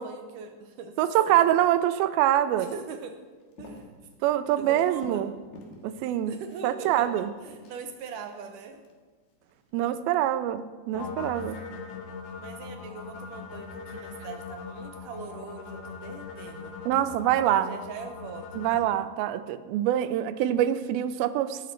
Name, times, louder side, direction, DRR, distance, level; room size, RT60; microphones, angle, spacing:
voice 1, 0.0-1.0 1.3-1.4 2.6-3.2 3.6-4.1 4.6-5.2 6.3-8.9 12.4-16.8 17.5-18.7, right 5 dB, 75° right, 6 dB, 2.1 m, -41 dB
voice 2, 1.0-2.7 4.2-5.3 5.8-6.4 6.6-7.3 9.7-11.6 16.9-17.7 18.5-21.6, right 12 dB, 90° right, 13 dB, 2.5 m, -25 dB
Walk footsteps, 3.4-5.3 5.5-5.8 6.2-8.9 9.4-9.7, left 2 dB, 85° left, 3.4 m, -49 dB
sound 1, 10.9-18.8, left 5 dB, 70° left, 1.5 m, -40 dB
17.5 x 7.8 x 4.5 m, 1.4 s
omnidirectional pair, 4.2 m